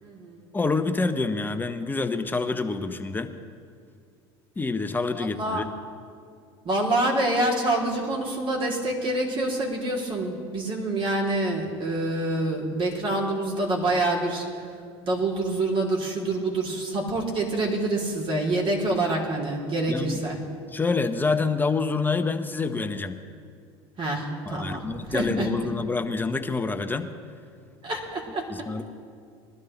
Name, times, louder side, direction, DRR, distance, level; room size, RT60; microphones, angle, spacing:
voice 1, 0.0-0.5 5.1-5.6 6.6-14.6 15.0-20.4 24.0-24.8 25.1-25.5 27.8-28.5, right 2 dB, 40° right, -2 dB, 3.3 m, -26 dB
voice 2, 0.5-3.3 4.6-5.7 19.9-20.2 20.7-23.2 24.5-27.1 28.5-28.8, left 4 dB, 15° left, 7 dB, 0.9 m, -27 dB
20.5 x 12.5 x 3.3 m, 2.3 s
supercardioid pair, 90°, 14 cm